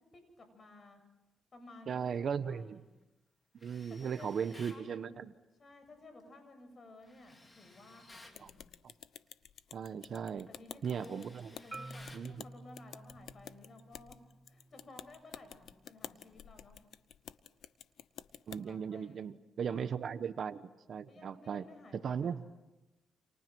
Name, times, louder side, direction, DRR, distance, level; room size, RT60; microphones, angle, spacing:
voice 1, 0.1-1.0 1.5-2.8 4.0-5.2 5.6-8.7 10.5-14.2 14.5-16.8 18.5-19.2 19.6-19.9 21.1-22.5, left 2 dB, 40° left, 7 dB, 7.6 m, -55 dB
voice 2, 1.9-2.8 3.6-5.3 8.4-8.5 9.7-10.5 10.8-11.5 12.1-12.4 18.5-21.6 22.0-22.5, right 7 dB, 60° right, 13 dB, 1.1 m, -37 dB
Tools, 3.6-4.9 7.0-8.4 9.9-10.1 10.5-12.3, left 2 dB, 20° left, 3.7 m, -57 dB
sound 1, 8.3-18.6, left 9 dB, 70° left, 0.9 m, -51 dB
Marimba xylophone, 11.7-15.9, right 2 dB, 20° right, 2.1 m, -52 dB
29.5 x 28.0 x 6.3 m, 1.0 s
cardioid pair, 85°, 0 cm